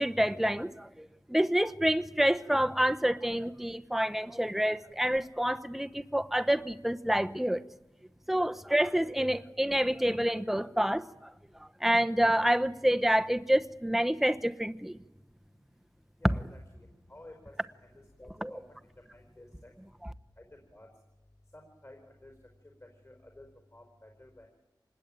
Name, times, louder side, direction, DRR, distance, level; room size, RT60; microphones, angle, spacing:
voice 1, 0.0-7.6 8.3-11.3 11.6-15.0 18.4-18.5, equal, 5° right, 10 dB, 0.9 m, -28 dB
voice 2, 16.2-17.5 18.2-18.6 19.1-19.5 20.7-20.9 21.5-22.3 23.0-23.5 23.7-23.8 24.2-24.5, left 1 dB, 35° left, 2 dB, 4.8 m, -52 dB
26.0 x 20.0 x 9.1 m, 1.0 s
wide cardioid pair, 70°, 8 cm